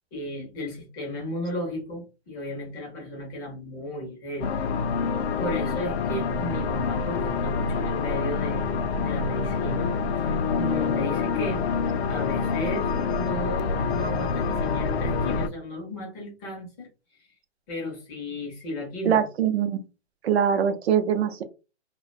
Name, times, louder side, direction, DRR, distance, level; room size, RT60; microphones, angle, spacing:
voice 1, 0.1-4.6 5.0-11.7 12.1-17.3 17.7-19.2, left 1 dB, 15° left, -1 dB, 0.5 m, -35 dB
sound 1, 4.4-15.5, left 5 dB, 65° left, 0.5 m, -26 dB
voice 2, 19.0-19.8 20.2-21.4, right 8 dB, 65° right, 9 dB, 0.5 m, -23 dB
2.4 x 2.1 x 2.5 m, 0.30 s
hypercardioid pair, 150°, 34 cm